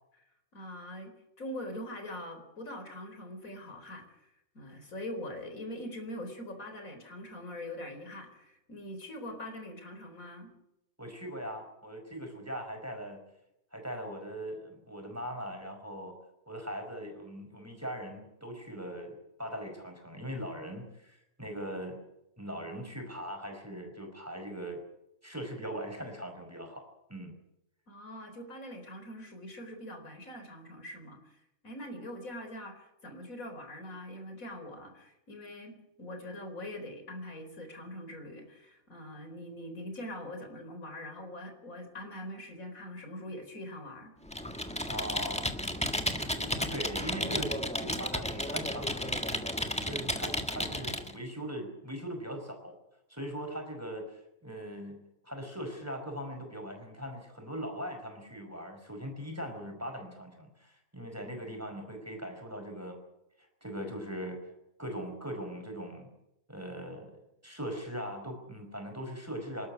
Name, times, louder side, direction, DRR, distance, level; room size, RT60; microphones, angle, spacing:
voice 1, 0.5-10.5 27.9-44.2, left 1 dB, 85° left, 6 dB, 4.8 m, -43 dB
voice 2, 11.0-13.2 13.7-16.1 16.5-22.0 22.4-24.8 25.2-26.8 27.1-27.4 44.6-45.6 46.1-49.5 49.8-52.7 53.1-63.0 63.6-64.5 64.8-66.1 66.5-69.7, equal, 10° right, 4 dB, 5.2 m, -40 dB
Computer keyboard, 44.3-51.1, equal, 5° left, 1.6 m, -33 dB
27.0 x 13.0 x 9.6 m, 0.86 s
omnidirectional pair, 1.4 m